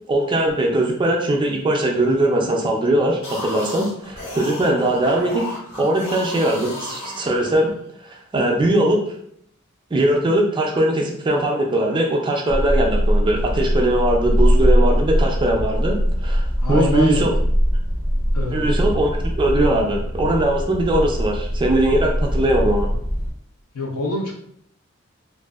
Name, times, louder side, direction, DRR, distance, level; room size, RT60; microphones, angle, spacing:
voice 1, 0.1-5.4 5.8-7.7 8.0-9.0 9.9-17.3 18.5-22.9, right 1 dB, 20° right, 1 dB, 0.3 m, -20 dB
sound 1, 3.1-7.8, left 2 dB, 60° left, 1.0 m, -34 dB
sound 2, 12.5-23.3, equal, 30° left, 0.6 m, -21 dB
voice 2, 16.6-17.3 18.3-18.7 23.7-24.3, left 2 dB, 80° left, 0 dB, 0.7 m, -25 dB
2.6 x 2.4 x 2.3 m, 0.68 s
head